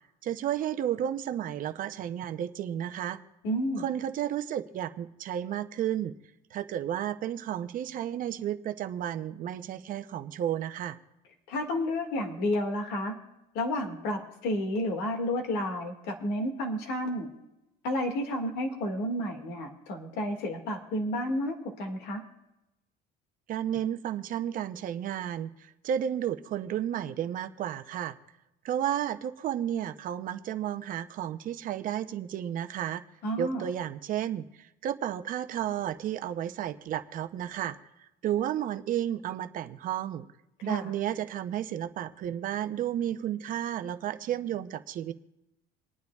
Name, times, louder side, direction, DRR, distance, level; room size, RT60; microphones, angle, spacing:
voice 1, 0.2-3.2 3.8-6.1 6.5-11.0 23.5-25.5 25.8-28.1 28.6-33.0 33.4-34.5 34.8-37.8 38.2-40.3 40.6-45.1, right 10 dB, 50° right, 11 dB, 0.6 m, -32 dB
voice 2, 3.4-3.8 11.5-13.1 13.5-17.3 17.8-22.2 33.2-33.7 40.6-40.9, left 1 dB, 70° left, 4 dB, 2.0 m, -31 dB
28.0 x 9.4 x 2.3 m, 0.91 s
cardioid pair, 120°, 18 cm